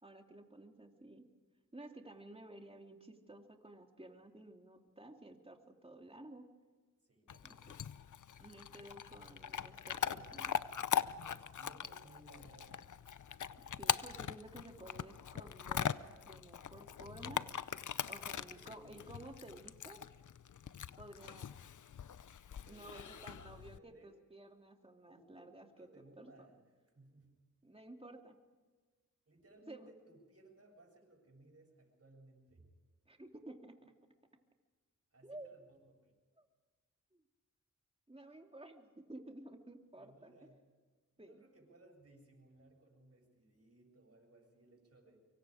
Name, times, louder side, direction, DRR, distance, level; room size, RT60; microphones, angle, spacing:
voice 1, 0.0-1.3 1.7-6.5 7.4-7.5 8.4-10.6 13.8-15.9 16.2-17.5 18.1-20.0 21.0-21.5 22.7-26.3 27.6-28.4 29.7-29.9 33.1-33.9 35.2-35.6 36.4-36.5 37.1-37.2 38.1-40.5 41.2-41.4, right 1 dB, 15° right, 3 dB, 2.8 m, -53 dB
voice 2, 7.0-7.8 11.2-12.8 18.1-18.3 18.5-19.1 22.6-24.2 25.1-26.6 26.9-27.4 29.3-32.7 35.1-36.1 40.0-40.7 41.2-45.2, right 2 dB, 45° right, 1 dB, 7.7 m, -62 dB
Chewing mastication / Dog, 7.3-23.8, left 8 dB, 65° left, 0.7 m, -41 dB
24.5 x 24.0 x 5.1 m, 1.4 s
cardioid pair, 55°, 32 cm